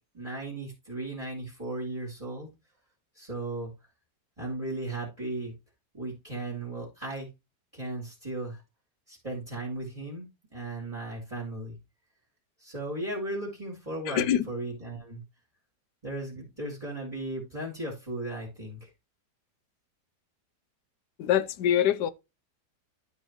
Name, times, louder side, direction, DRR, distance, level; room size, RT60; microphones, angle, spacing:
voice 1, 0.1-2.5 3.1-3.7 4.4-5.5 5.9-7.3 7.7-8.6 9.1-11.7 12.6-15.2 16.0-18.9, right 2 dB, 20° right, 2.8 m, -36 dB
voice 2, 14.1-14.4 21.2-22.1, left 10 dB, 80° left, 1.3 m, -24 dB
12.5 x 4.6 x 3.0 m
omnidirectional pair, 1.8 m